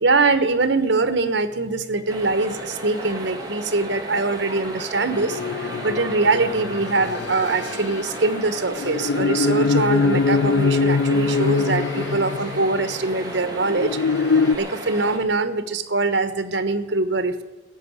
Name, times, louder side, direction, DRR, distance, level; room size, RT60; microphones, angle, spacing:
voice 1, 0.0-17.4, right 3 dB, 75° right, 11 dB, 1.2 m, -23 dB
sound 1, 2.1-15.2, right 1 dB, 20° right, 2.3 m, -34 dB
sound 2, 5.1-12.9 13.6-14.6, left 4 dB, 70° left, 0.4 m, -23 dB
15.5 x 6.5 x 9.6 m, 1.2 s
head